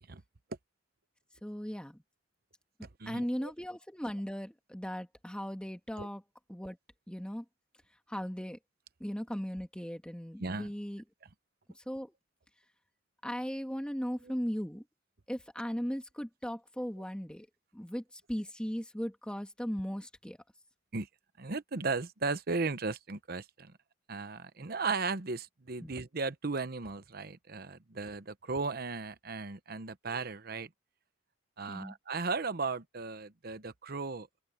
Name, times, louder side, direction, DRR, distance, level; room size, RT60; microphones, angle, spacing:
voice 1, 1.4-2.0 3.0-6.2 6.5-6.8 7.1-7.4 8.1-8.6 9.0-11.0 11.7-12.1 13.2-14.8 15.3-17.5 17.7-20.4 25.8-25.9 31.7-31.9, equal, 5° left, 1.7 m, -37 dB
voice 2, 3.0-3.5 6.0-6.1 10.4-10.7 20.9-21.1 21.4-23.7 24.1-30.7 31.6-34.3, right 4 dB, 55° right, 1.0 m, -36 dB
open air
head